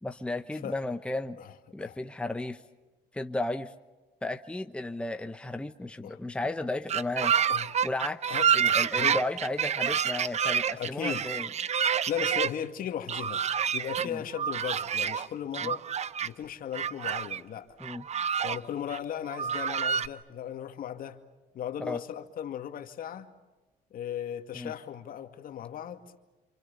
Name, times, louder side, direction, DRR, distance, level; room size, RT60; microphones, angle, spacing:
voice 1, 0.0-1.4 1.7-2.6 3.1-3.7 4.2-7.3 7.8-11.5 14.0-14.2 15.6-15.7 17.8-18.1 21.8-22.0 24.5-24.7, left 2 dB, 5° left, 8 dB, 1.0 m, -34 dB
sound 1, 6.9-12.5 13.1-14.1 14.3-15.3 15.5-16.3 16.7-17.4 17.8-18.6 18.9-19.0 19.3-20.1, right 8 dB, 40° right, 0.8 m, -28 dB
voice 2, 8.3-9.2 9.9-10.1 10.8-11.3 12.1-13.4 13.7-15.9 16.2-17.7 18.4-21.2 21.5-23.3 23.9-26.0, left 9 dB, 55° left, 7 dB, 2.3 m, -37 dB
28.0 x 28.0 x 7.0 m, 1.1 s
cardioid pair, 110°, 17 cm